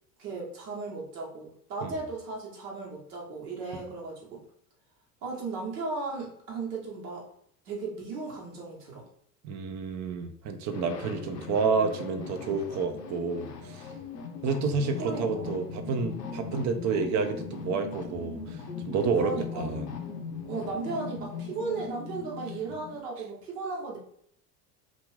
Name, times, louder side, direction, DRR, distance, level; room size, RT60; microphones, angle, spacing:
voice 1, 0.2-4.4 5.2-7.3 7.7-9.1 15.0-15.6 19.1-19.7 20.4-24.0, right 3 dB, 75° right, -2 dB, 1.1 m, -36 dB
voice 2, 9.4-13.9 14.4-19.9, right 5 dB, 40° right, 7 dB, 0.5 m, -30 dB
sound 1, 10.7-23.0, left 5 dB, 90° left, 0.6 m, -39 dB
2.6 x 2.4 x 3.2 m, 0.66 s
hypercardioid pair, 65°, 48 cm